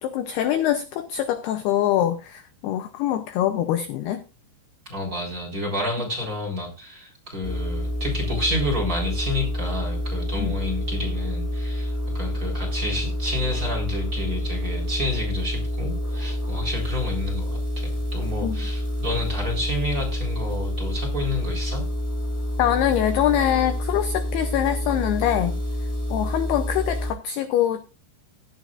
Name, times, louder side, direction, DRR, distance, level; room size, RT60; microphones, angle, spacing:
voice 1, 0.0-4.2 10.4-10.5 18.4-18.6 22.6-25.6 26.1-27.8, left 11 dB, 80° left, 2.4 m, -24 dB
voice 2, 4.9-21.8, left 1 dB, 20° right, 3.9 m, -30 dB
sound 1, 7.4-27.1, equal, 5° left, 1.7 m, -28 dB
15.5 x 12.5 x 2.5 m
omnidirectional pair, 5.4 m